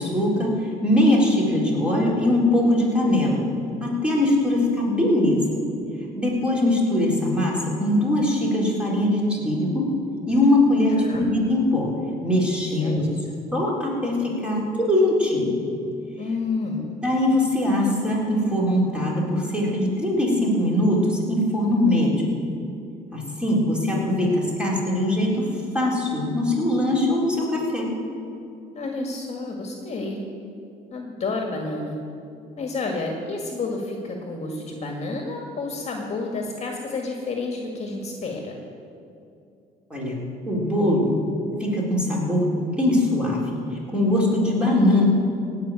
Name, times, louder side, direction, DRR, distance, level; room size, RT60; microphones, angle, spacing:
voice 1, 0.0-3.4 3.8-5.6 6.2-9.9 10.3-11.9 12.2-13.1 13.5-15.5 17.0-22.3 23.1-25.5 25.7-27.9 39.9-40.2 40.5-41.2 41.6-43.6 43.9-45.0, left 1 dB, 5° right, -4 dB, 3.8 m, -21 dB
voice 2, 10.9-11.3 12.8-13.1 16.2-17.0 28.8-30.2 30.9-32.0 32.6-38.6, left 3 dB, 40° left, 1 dB, 1.9 m, -30 dB
16.5 x 6.0 x 8.9 m, 2.6 s
cardioid pair, 110°, 17 cm